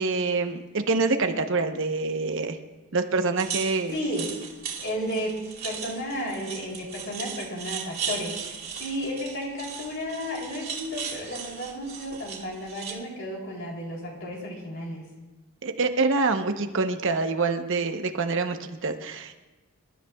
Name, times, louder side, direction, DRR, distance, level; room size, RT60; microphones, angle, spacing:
voice 1, 0.0-2.6 2.9-4.0 15.6-19.4, right 3 dB, 60° right, 6 dB, 0.9 m, -26 dB
sound 1, 3.4-12.9, right 7 dB, 45° right, 2.5 m, -37 dB
voice 2, 3.9-4.3 4.8-15.0, equal, 55° left, -2 dB, 3.8 m, -33 dB
26.5 x 13.0 x 2.4 m, 1.1 s
head